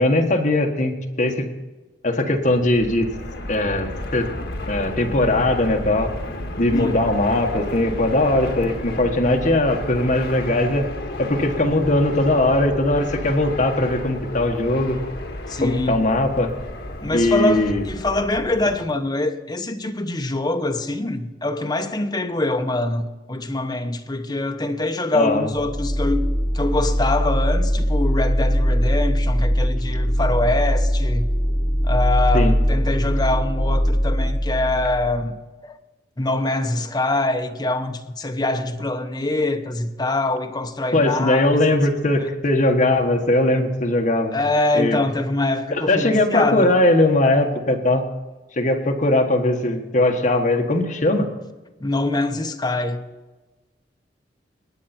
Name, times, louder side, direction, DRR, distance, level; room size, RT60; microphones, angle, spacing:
voice 1, 0.0-1.5 2.0-3.1 3.5-4.3 4.7-6.1 6.6-10.8 11.2-15.0 15.6-16.5 17.1-17.8 25.1-25.5 32.3-32.5 40.9-44.3 44.7-45.0 45.7-48.0 48.6-51.3, left 1 dB, 45° left, 1.5 m, -20 dB
Fixed-wing aircraft airplane, 2.5-18.9, left 1 dB, 65° left, 1.7 m, -32 dB
voice 2, 15.5-16.0 17.0-26.2 26.5-31.3 31.8-35.3 35.6-35.7 36.2-41.7 42.2-42.3 44.3-46.7 51.8-53.1, left 2 dB, 25° left, 0.9 m, -24 dB
sound 1, 25.5-35.2, equal, 40° right, 4.8 m, -21 dB
19.5 x 9.3 x 4.4 m
head